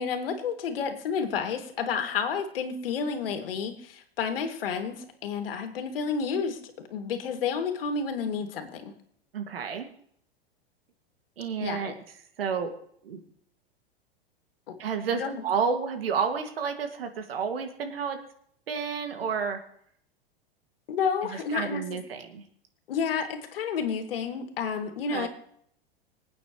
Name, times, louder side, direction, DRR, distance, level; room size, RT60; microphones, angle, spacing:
voice 1, 0.0-8.9 11.6-11.9 14.7-14.8 15.1-15.4 20.9-21.8 22.9-25.3, left 6 dB, 70° left, 5 dB, 2.6 m, -30 dB
voice 2, 9.3-9.9 11.4-11.9 12.4-12.7 13.0-13.2 14.8-18.2 18.7-19.6 21.2-22.4 25.1-25.3, right 6 dB, 70° right, 5 dB, 2.4 m, -30 dB
26.0 x 9.0 x 3.2 m, 0.65 s
hypercardioid pair, 100°, 30 cm